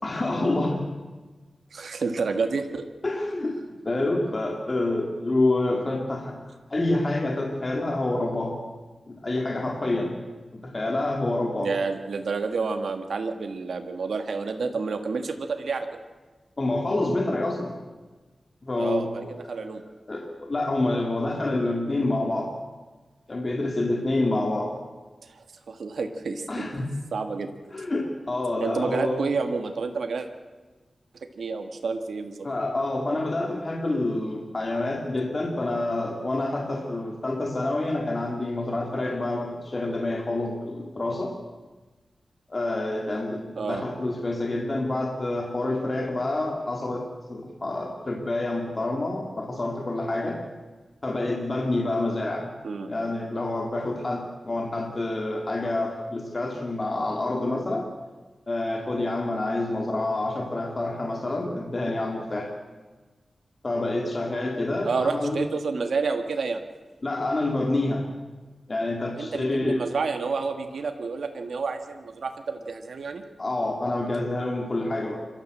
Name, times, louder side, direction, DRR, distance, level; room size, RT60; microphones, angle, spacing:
voice 1, 0.0-0.9 3.0-6.4 6.7-8.6 9.1-10.2 10.5-11.7 16.6-17.7 18.6-19.7 20.1-22.5 23.3-24.8 26.5-26.9 27.7-29.3 32.4-41.3 42.5-50.4 51.0-52.5 52.9-57.9 58.5-62.5 63.6-65.4 67.0-68.1 68.7-69.9 73.4-75.2, left 2 dB, 35° left, 1 dB, 2.4 m, -27 dB
voice 2, 1.7-2.9 11.6-16.0 18.8-19.8 25.2-26.7 27.1-27.5 28.6-30.3 31.4-32.5 43.6-43.8 52.6-52.9 64.8-66.6 69.2-73.2, right 4 dB, 85° right, 6 dB, 1.7 m, -29 dB
27.0 x 13.5 x 7.8 m, 1.3 s
wide cardioid pair, 105°, 0 cm